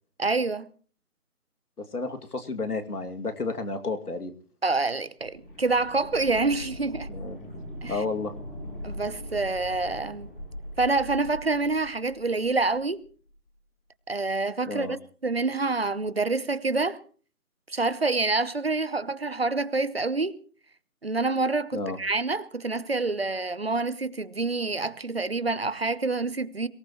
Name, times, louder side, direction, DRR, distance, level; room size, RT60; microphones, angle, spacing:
voice 1, 0.2-0.7 4.6-7.1 7.8-8.0 8.8-10.3 10.8-13.0 14.1-15.0 15.2-17.0 17.7-20.4 21.0-26.7, right 3 dB, 40° right, 0.9 m, -27 dB
voice 2, 1.8-4.3 7.1-7.4 7.9-8.3 14.7-15.0 21.7-22.0, left 3 dB, 85° left, 2.6 m, -31 dB
sound 1, 5.2-13.0 13.3-13.4, equal, 35° left, 4.5 m, -41 dB
23.0 x 18.5 x 3.1 m
figure-of-eight pair, 175°, 44 cm